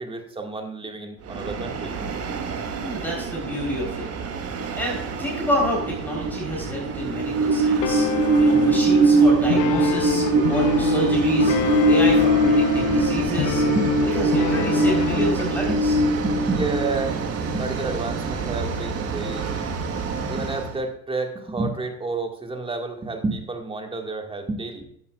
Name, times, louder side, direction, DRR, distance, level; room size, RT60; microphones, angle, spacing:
voice 1, 0.0-2.1 13.7-13.9 15.7-15.8 16.2-17.1 17.5-19.7 20.3-24.8, right 3 dB, 10° right, 4 dB, 1.9 m, -30 dB
Train, 1.3-20.7, right 2 dB, 35° right, 1.5 m, -23 dB
voice 2, 2.8-4.1 4.8-8.1 8.4-13.6 14.1-15.9, equal, 5° left, -3 dB, 4.1 m, -28 dB
sound 1, 7.8-15.5, left 12 dB, 50° left, 0.7 m, -28 dB
14.5 x 11.0 x 2.4 m, 0.70 s
hypercardioid pair, 85°, 44 cm